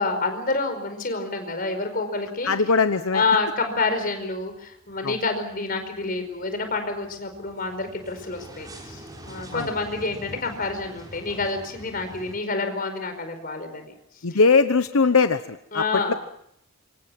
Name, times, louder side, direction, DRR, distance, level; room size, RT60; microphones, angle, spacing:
voice 1, 0.0-2.5 3.1-13.9 14.3-14.4 15.7-16.2, left 3 dB, 45° left, 7 dB, 5.0 m, -28 dB
voice 2, 2.4-3.2 5.0-5.2 9.5-9.7 14.2-15.8 16.1-16.2, left 4 dB, 80° left, 10 dB, 0.9 m, -20 dB
sound 1, 2.7-2.8 3.2-12.4, equal, 20° right, 5.8 m, -45 dB
27.0 x 24.5 x 6.0 m, 0.74 s
head